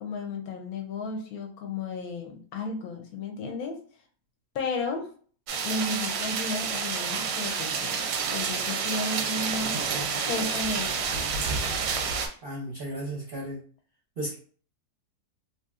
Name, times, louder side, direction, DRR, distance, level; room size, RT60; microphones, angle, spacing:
voice 1, 0.0-3.8 4.5-5.1 5.6-9.8 10.3-11.0, left 3 dB, 70° left, 4 dB, 1.0 m, -33 dB
sound 1, 5.5-12.3, right 5 dB, 85° right, 1.2 m, -29 dB
voice 2, 12.4-13.6 14.2-14.3, right 1 dB, 55° right, -4 dB, 0.6 m, -34 dB
2.8 x 2.7 x 2.3 m, 0.44 s
omnidirectional pair, 1.7 m